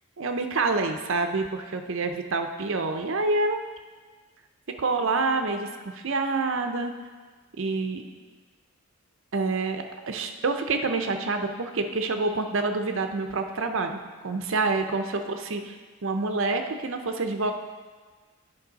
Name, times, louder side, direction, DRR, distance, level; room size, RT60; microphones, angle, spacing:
voice 1, 0.2-3.6 4.8-5.7 5.9-6.9 7.6-8.0 9.3-17.5, right 3 dB, 65° right, 6 dB, 0.6 m, -27 dB
9.4 x 5.3 x 4.0 m, 1.5 s
head